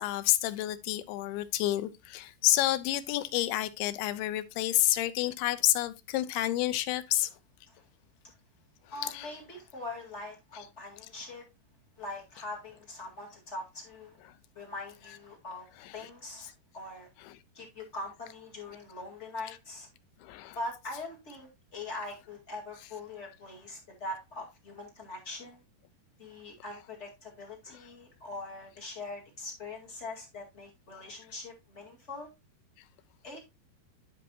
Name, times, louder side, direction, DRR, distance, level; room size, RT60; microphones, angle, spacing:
voice 1, 0.0-7.3 9.0-9.3 15.8-16.1 20.2-20.6, left 15 dB, 85° left, 2.6 m, -29 dB
voice 2, 8.9-11.4 12.0-14.2 14.5-17.1 17.5-19.9 20.5-25.6 26.2-32.3 33.2-33.4, left 2 dB, 30° left, 1.2 m, -42 dB
11.0 x 5.4 x 2.7 m
omnidirectional pair, 4.6 m